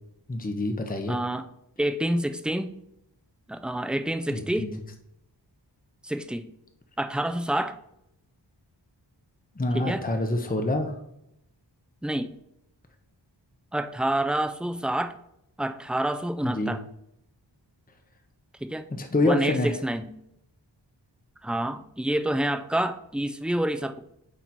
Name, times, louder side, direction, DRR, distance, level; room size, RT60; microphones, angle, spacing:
voice 1, 0.3-1.2 4.3-4.7 9.6-11.0 16.4-16.7 18.9-19.7, left 2 dB, 20° left, 5 dB, 0.7 m, -26 dB
voice 2, 1.1-1.5 1.8-2.8 3.5-4.7 6.0-6.5 7.0-7.8 9.7-10.0 12.0-12.3 13.7-15.2 15.6-16.8 18.6-18.8 19.2-20.1 21.4-24.0, right 1 dB, ahead, 8 dB, 0.4 m, -28 dB
8.6 x 3.0 x 4.0 m, 0.80 s
wide cardioid pair, 45°, 44 cm